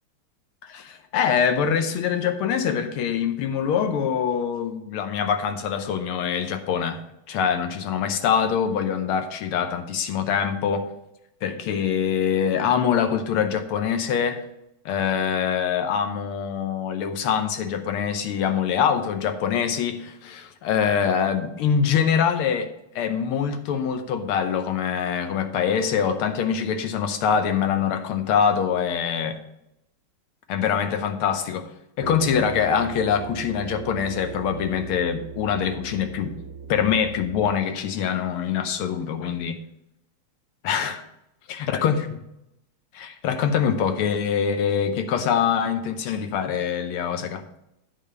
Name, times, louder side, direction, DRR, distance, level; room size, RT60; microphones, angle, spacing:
voice 1, 0.6-7.0 7.3-10.9 11.4-14.4 14.9-22.7 23.0-29.4 30.5-31.7 32.0-36.4 36.7-39.6 40.6-41.0 41.6-42.0 42.9-47.4, left 7 dB, 85° left, 8 dB, 1.7 m, -24 dB
sound 1, 32.0-37.6, right 7 dB, 75° right, 0.9 m, -38 dB
9.6 x 4.0 x 6.6 m, 0.84 s
omnidirectional pair, 2.3 m